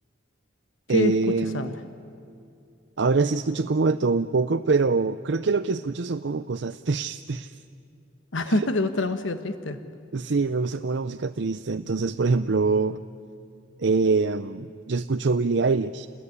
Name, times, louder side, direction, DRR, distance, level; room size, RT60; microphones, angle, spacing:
voice 1, 0.9-1.7 3.0-7.6 8.5-8.7 10.1-13.0 13.8-16.1, right 4 dB, 65° right, 11 dB, 0.6 m, -24 dB
voice 2, 1.4-1.7 8.3-9.8, left 2 dB, 80° left, 9 dB, 1.2 m, -26 dB
29.0 x 20.5 x 9.8 m, 2.6 s
head